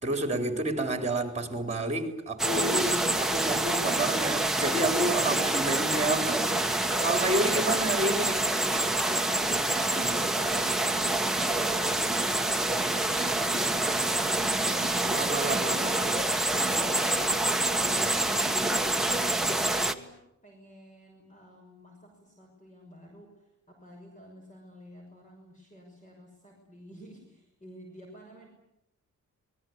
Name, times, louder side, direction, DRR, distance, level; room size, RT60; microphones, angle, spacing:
voice 1, 0.0-6.4 6.8-8.5 15.1-15.9, right 1 dB, 20° right, 4.0 m, -30 dB
sound 1, 2.4-19.9, right 2 dB, ahead, 1.4 m, -27 dB
voice 2, 5.1-7.2 7.6-7.9 9.2-23.3 23.7-28.5, equal, 25° left, 6.3 m, -48 dB
27.5 x 21.0 x 9.6 m
wide cardioid pair, 160°, 31 cm